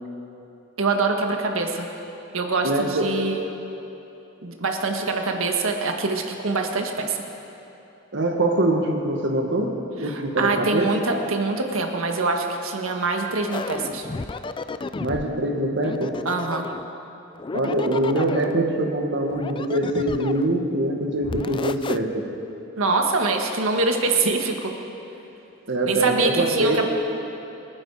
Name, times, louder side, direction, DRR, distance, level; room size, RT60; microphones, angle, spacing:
voice 1, 0.8-1.9 2.3-3.5 4.4-7.2 10.0-14.1 16.2-16.7 22.8-24.7 25.9-26.8, right 3 dB, 80° right, 3 dB, 1.6 m, -24 dB
voice 2, 2.6-3.1 8.1-10.9 15.0-16.2 17.5-22.2 25.7-26.8, right 1 dB, 60° right, 2 dB, 1.6 m, -23 dB
sound 1, 13.5-15.3 15.8-16.9 17.4-18.6 19.3-20.5 21.2-22.0, left 3 dB, 25° left, 0.4 m, -32 dB
27.5 x 10.5 x 4.9 m, 3.0 s
head